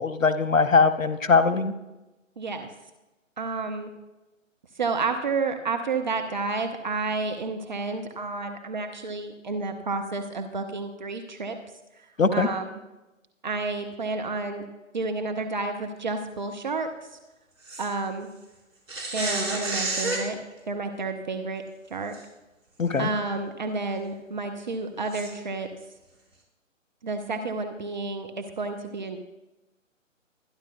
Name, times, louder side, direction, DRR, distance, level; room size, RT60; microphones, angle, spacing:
voice 1, 0.0-1.7 12.2-12.5 22.8-23.1, left 4 dB, 75° left, 11 dB, 1.0 m, -21 dB
voice 2, 2.4-2.7 3.4-3.9 4.8-11.6 12.0-12.1 12.3-12.8 13.4-14.6 14.9-16.9 17.8-18.3 19.1-20.4 20.7-21.6 21.9-22.1 23.0-25.7 27.0-29.2, right 3 dB, 35° right, 5 dB, 0.8 m, -30 dB
sound 1, 17.6-17.9 18.9-20.3 22.1-22.2 22.8-22.9 25.1-25.3, right 2 dB, 75° right, 4.8 m, -29 dB
23.5 x 10.5 x 2.3 m, 1.0 s
figure-of-eight pair, 140°, 39 cm